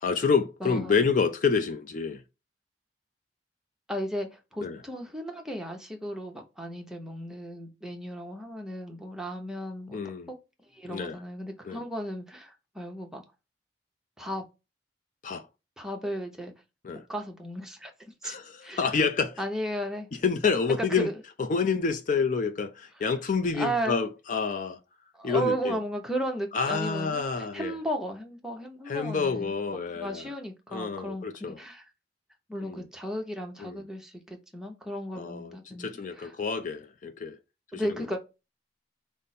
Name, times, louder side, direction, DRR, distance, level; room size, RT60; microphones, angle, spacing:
voice 1, 0.0-2.2 4.6-4.8 9.9-10.3 10.9-11.2 11.6-11.8 15.2-15.5 16.8-17.0 18.2-19.4 20.2-21.1 21.5-24.8 25.2-25.8 26.5-27.7 28.9-30.3 30.7-31.6 32.6-32.8 33.6-33.8 35.2-37.4 37.7-38.0, left 5 dB, 45° left, 0.4 m, -28 dB
voice 2, 0.6-1.0 3.9-10.0 10.7-13.2 14.2-14.4 15.8-16.5 17.1-17.9 18.2-18.4 18.6-18.9 19.4-20.1 20.8-21.1 23.5-24.0 25.1-29.5 29.9-31.8 32.5-36.3 37.7-38.2, right 1 dB, 5° right, 0.8 m, -35 dB
5.1 x 2.1 x 4.1 m
head